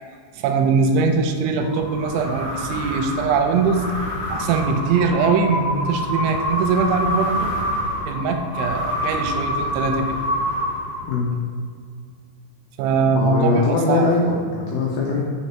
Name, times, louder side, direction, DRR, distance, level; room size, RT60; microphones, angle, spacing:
voice 1, 0.3-3.8 4.3-7.5 8.1-10.2 12.8-14.1, right 5 dB, 90° right, 6 dB, 3.1 m, -21 dB
sound 1, 1.6-11.3, left 1 dB, 50° left, 2.5 m, -26 dB
voice 2, 13.1-15.3, left 3 dB, 75° left, -4 dB, 2.1 m, -21 dB
7.2 x 6.5 x 4.3 m, 2.1 s
omnidirectional pair, 5.2 m